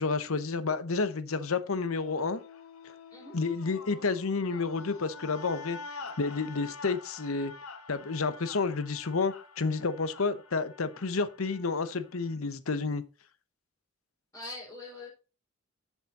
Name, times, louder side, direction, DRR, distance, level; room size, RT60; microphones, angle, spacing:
voice 1, 0.0-2.4 3.3-5.8 6.2-7.5 7.9-13.0, left 4 dB, 75° left, 0.8 m, -30 dB
sound 1, 1.9-12.3, left 4 dB, 90° left, 1.1 m, -47 dB
voice 2, 14.3-15.1, left 2 dB, 15° left, 4.3 m, -42 dB
7.3 x 7.2 x 4.1 m
head